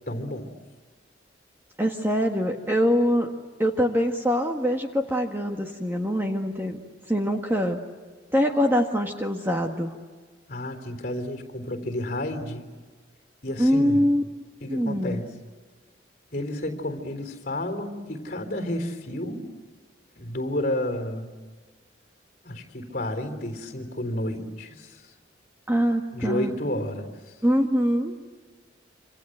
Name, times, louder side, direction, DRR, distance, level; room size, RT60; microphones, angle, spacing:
voice 1, 0.1-0.5 10.5-12.7 13.4-14.1 14.6-15.2 16.3-19.5 20.2-21.3 22.4-25.1 26.1-27.1, left 1 dB, 45° left, 5 dB, 3.8 m, -31 dB
voice 2, 1.8-3.3 3.6-6.8 7.1-7.8 8.3-9.9 13.6-14.2 14.7-15.2 25.7-26.5 27.4-28.1, equal, 10° right, 3 dB, 1.6 m, -23 dB
27.5 x 27.0 x 8.0 m, 1.4 s
head